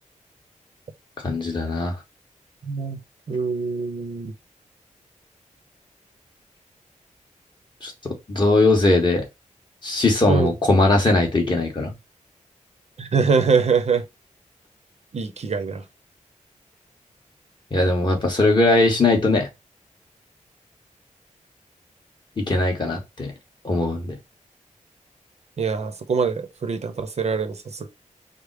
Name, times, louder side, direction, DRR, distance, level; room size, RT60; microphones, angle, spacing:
voice 1, 1.2-1.9 7.8-7.9 8.3-9.2 9.8-11.9 17.7-19.5 22.4-23.3 23.6-24.2, left 2 dB, 35° left, 1.4 m, -19 dB
voice 2, 2.6-3.0 3.3-4.3 10.3-10.5 13.0-14.0 15.1-15.8 25.6-27.9, right 5 dB, 55° right, 0.7 m, -23 dB
5.1 x 2.0 x 4.7 m
wide cardioid pair, 155°, 13 cm